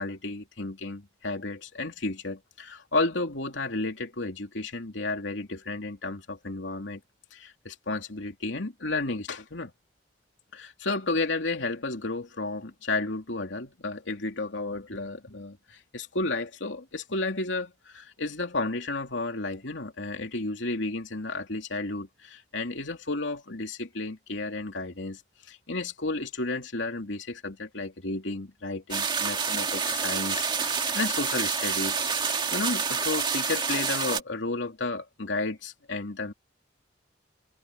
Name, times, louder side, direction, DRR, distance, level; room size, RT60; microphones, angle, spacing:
voice 1, 0.0-7.0 7.3-9.7 10.5-25.2 25.5-36.3, left 2 dB, 85° left, 2.8 m, -32 dB
sound 1, 28.9-34.2, right 5 dB, 25° right, 2.0 m, -28 dB
head